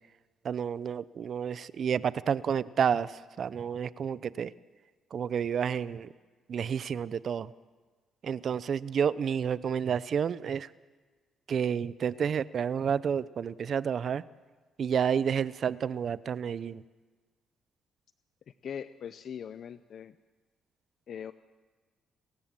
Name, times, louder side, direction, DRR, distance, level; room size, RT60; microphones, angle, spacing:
voice 1, 0.4-4.5 5.1-6.1 6.5-7.5 8.2-10.7 11.5-14.2 14.8-16.8, right 7 dB, 55° right, 18 dB, 0.6 m, -30 dB
voice 2, 18.5-20.2 21.1-21.3, left 8 dB, 60° left, 13 dB, 0.6 m, -41 dB
28.5 x 15.5 x 7.5 m, 1.4 s
cardioid pair, 90°, 0 cm